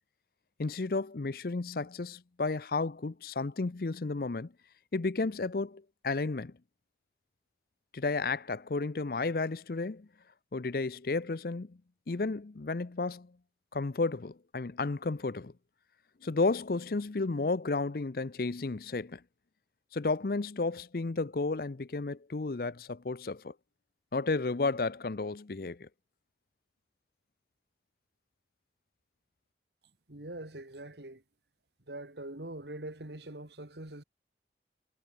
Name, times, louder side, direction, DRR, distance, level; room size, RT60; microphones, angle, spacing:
voice 1, 0.6-4.5 4.9-6.5 7.9-10.1 10.5-11.8 12.1-13.3 13.7-15.5 16.2-19.2 19.9-23.5 24.1-25.9, left 3 dB, 55° left, 0.6 m, -32 dB
voice 2, 30.1-31.2 31.9-34.0, right 1 dB, 70° right, 2.7 m, -43 dB
head